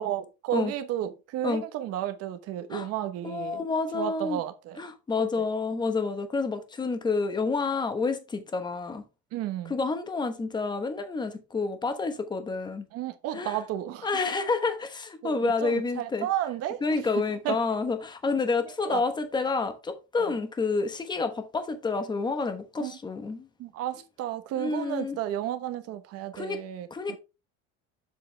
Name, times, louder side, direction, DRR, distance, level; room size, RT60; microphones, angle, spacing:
voice 1, 0.0-3.6 3.9-4.8 5.2-5.5 9.3-9.7 12.9-14.1 15.2-17.0 17.4-17.6 18.8-19.0 20.2-20.3 22.8-23.0 23.6-27.2, right 12 dB, 45° right, 1.0 m, -32 dB
voice 2, 3.2-4.4 4.8-9.0 9.7-12.8 13.3-13.6 14.0-16.3 16.8-23.5 24.6-25.2 26.3-26.6 26.9-27.2, left 4 dB, 15° left, 1.0 m, -29 dB
7.4 x 6.8 x 3.3 m
cardioid pair, 155°, 33 cm